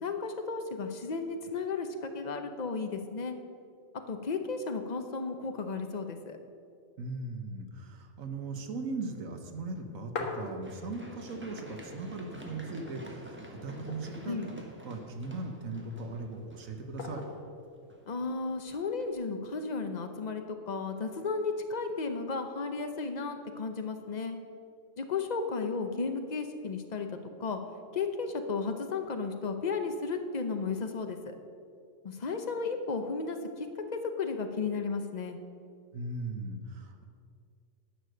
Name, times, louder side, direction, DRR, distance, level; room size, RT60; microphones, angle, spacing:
voice 1, 0.0-3.4 4.1-6.4 14.2-14.5 18.1-24.4 25.0-27.6 27.9-31.3 32.0-35.4, left 4 dB, 40° left, 6 dB, 0.7 m, -34 dB
voice 2, 7.0-17.2 35.9-37.1, right 3 dB, 90° right, 5 dB, 1.4 m, -39 dB
sound 1, 9.6-11.1 11.5-11.6 11.8-12.6 13.0-13.1 13.6-14.4 15.1-15.8 17.0-17.6 18.7-19.2, left 3 dB, 80° left, 1.5 m, -40 dB
Run, 10.6-18.5 19.0-19.1, equal, 10° right, 1.0 m, -49 dB
10.5 x 6.7 x 6.5 m, 2.3 s
omnidirectional pair, 1.4 m